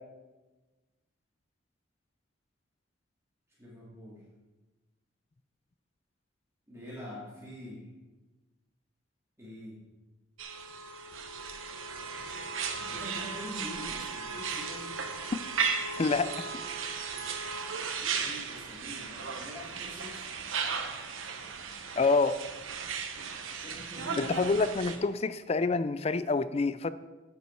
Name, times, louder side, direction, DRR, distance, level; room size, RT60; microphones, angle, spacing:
voice 1, 3.6-4.2 6.7-7.9 9.4-9.8 12.7-15.0 18.0-20.3 23.5-24.5 24.9-25.0, left 1 dB, 15° right, -7 dB, 2.6 m, -44 dB
sound 1, 10.4-25.0, right 5 dB, 90° right, 1.0 m, -36 dB
voice 2, 16.0-16.4 22.0-22.4 24.2-26.9, left 3 dB, 30° left, 14 dB, 0.4 m, -27 dB
9.6 x 8.2 x 4.6 m, 1.2 s
head